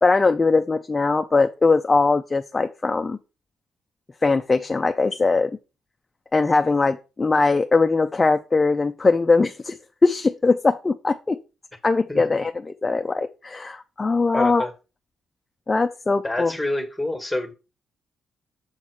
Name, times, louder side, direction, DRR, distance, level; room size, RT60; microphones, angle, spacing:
voice 1, 0.0-3.2 4.2-5.5 6.3-9.8 10.0-11.4 11.8-12.5 12.8-14.7 15.7-16.5, left 3 dB, 25° left, 0.4 m, -20 dB
voice 2, 14.3-14.7 16.2-17.5, left 1 dB, 5° left, 1.4 m, -27 dB
7.2 x 4.1 x 4.6 m
cardioid pair, 90°, 0 cm